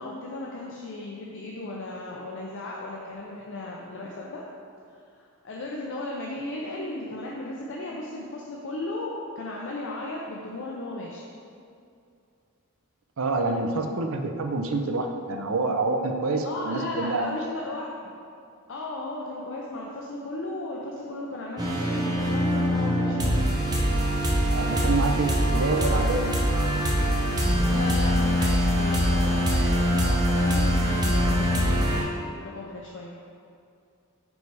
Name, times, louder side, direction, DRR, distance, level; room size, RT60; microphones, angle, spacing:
voice 1, 0.0-4.4 5.4-11.2 16.4-17.9 18.7-23.5 27.7-32.2 32.5-33.1, left 2 dB, 60° left, -3 dB, 0.6 m, -35 dB
voice 2, 13.2-17.4 24.5-26.3, right 3 dB, 65° right, 4 dB, 0.6 m, -27 dB
sound 1, 21.6-32.0, equal, 20° right, 0.7 m, -23 dB
5.3 x 4.7 x 4.7 m, 2.5 s
head